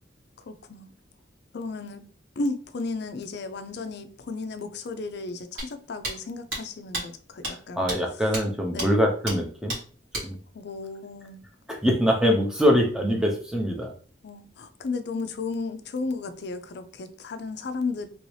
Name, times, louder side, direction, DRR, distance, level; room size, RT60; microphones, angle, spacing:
voice 1, 0.4-0.9 1.5-2.0 2.4-7.9 8.7-8.9 10.5-11.4 14.2-18.1, left 3 dB, 55° left, 0.4 m, -34 dB
sound 1, 5.6-5.7 6.0-6.1 6.5-6.6 6.9-7.0 7.4-7.5 7.9-8.0 8.3-8.4 8.8-8.9 9.3-9.4 9.7-9.8 10.1-10.2, right 1 dB, 70° right, 1.5 m, -30 dB
voice 2, 7.5-9.8 10.2-10.4 11.7-13.9, equal, 5° right, 0.6 m, -23 dB
3.0 x 2.7 x 3.2 m
head